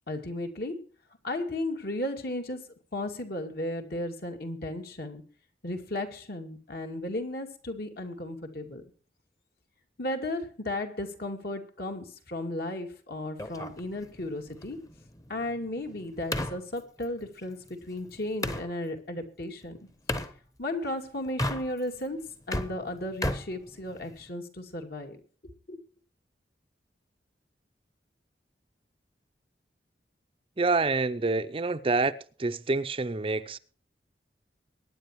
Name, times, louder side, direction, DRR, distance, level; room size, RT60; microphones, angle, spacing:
voice 1, 0.1-0.8 1.2-2.6 2.9-5.2 5.6-8.8 10.0-14.8 15.3-19.8 20.6-22.2 22.5-25.2 25.7-25.8, left 1 dB, 60° left, 2.4 m, -35 dB
sound 1, 13.4-18.7 20.1-20.3 21.3-22.0 22.3-24.3, left 1 dB, 20° left, 1.1 m, -35 dB
voice 2, 30.6-32.1 32.4-33.6, right 3 dB, 30° right, 0.6 m, -27 dB
23.0 x 10.0 x 3.1 m
head